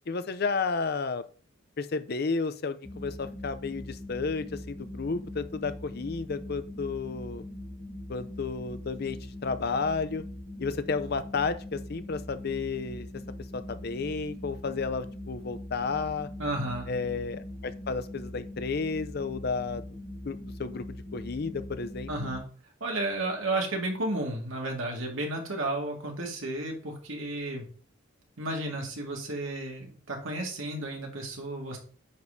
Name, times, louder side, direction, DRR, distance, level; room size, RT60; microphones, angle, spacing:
voice 1, 0.1-1.2 1.8-7.4 8.1-10.2 10.6-13.1 13.5-16.3 16.9-20.0 20.2-20.8 21.1-22.1, left 4 dB, 50° left, 12 dB, 0.5 m, -32 dB
sound 1, 2.8-22.4, left 1 dB, 5° left, 1.7 m, -42 dB
voice 2, 16.4-16.9 22.1-22.4 22.8-27.7 28.4-31.8, right 2 dB, 75° right, 0 dB, 2.0 m, -32 dB
9.3 x 5.3 x 2.7 m, 0.42 s
head